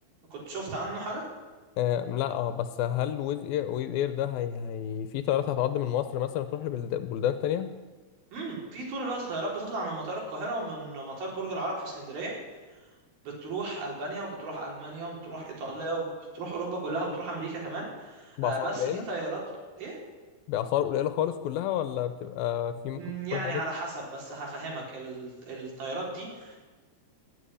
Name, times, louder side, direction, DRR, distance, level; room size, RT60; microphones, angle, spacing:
voice 1, 0.3-1.2 8.3-12.3 12.7-12.9 13.3-19.4 19.8-20.0 22.9-26.6, right 2 dB, 65° right, -2 dB, 5.7 m, -35 dB
voice 2, 1.8-7.7 18.4-19.1 20.5-23.0 23.3-23.6, left 11 dB, 80° left, 10 dB, 2.4 m, -29 dB
18.0 x 8.0 x 10.0 m, 1.3 s
omnidirectional pair, 4.5 m